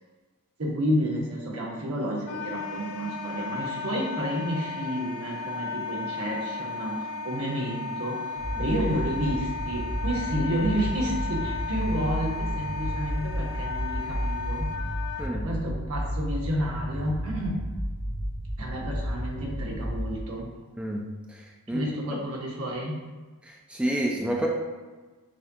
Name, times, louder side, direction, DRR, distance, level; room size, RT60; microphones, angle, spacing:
voice 1, 0.6-8.2 8.6-14.7 15.3-17.7 18.6-20.5 21.7-23.1, equal, 85° right, -2 dB, 1.1 m, -30 dB
Wind instrument woodwind instrument, 2.3-15.3, left 4 dB, 75° left, 0.3 m, -35 dB
sound 1, 8.4-20.2, equal, 20° left, 1.2 m, -32 dB
voice 2, 20.8-21.4 21.7-21.9 23.4-24.5, right 1 dB, 5° right, -1 dB, 0.3 m, -29 dB
6.3 x 2.3 x 2.7 m, 1.3 s
head